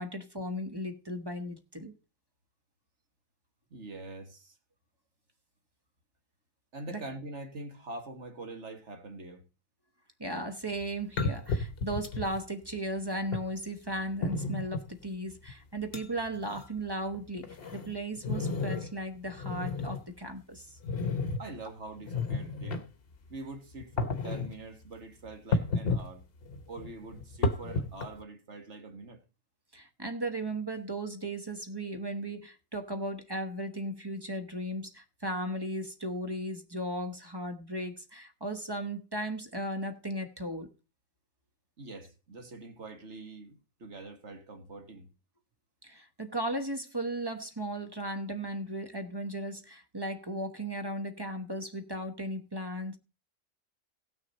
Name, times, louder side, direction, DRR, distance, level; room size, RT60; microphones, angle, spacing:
voice 1, 0.0-1.9 6.9-7.0 10.2-20.7 29.7-40.7 45.8-53.0, right 1 dB, 20° right, 1.0 m, -36 dB
voice 2, 3.7-4.6 6.7-9.5 21.4-22.9 23.3-26.2 26.7-29.2 41.8-45.1, right 2 dB, 60° right, 2.0 m, -44 dB
sound 1, 10.7-10.8 11.2-12.4 13.3-13.4 14.2-14.9 15.5-15.6 15.9-16.0 16.3-16.6 17.1-18.9 19.3-20.0 20.8-21.4 22.0-22.8 23.8-24.5 25.5-26.1 26.4-28.2, left 3 dB, 50° left, 1.1 m, -32 dB
17.5 x 6.3 x 4.1 m
omnidirectional pair, 1.4 m